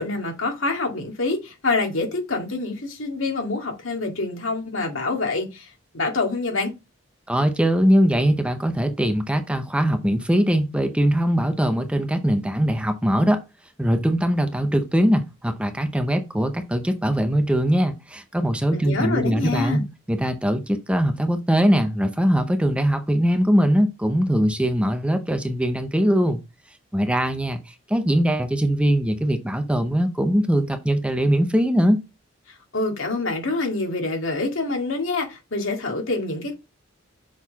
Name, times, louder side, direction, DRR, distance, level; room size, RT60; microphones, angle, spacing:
voice 1, 0.0-5.7 5.9-6.7 18.7-19.8 32.5-36.5, left 3 dB, 80° left, 2.0 m, -26 dB
voice 2, 7.3-13.4 13.8-26.4 26.9-32.0, equal, 5° right, 0.6 m, -21 dB
6.3 x 4.0 x 4.0 m
head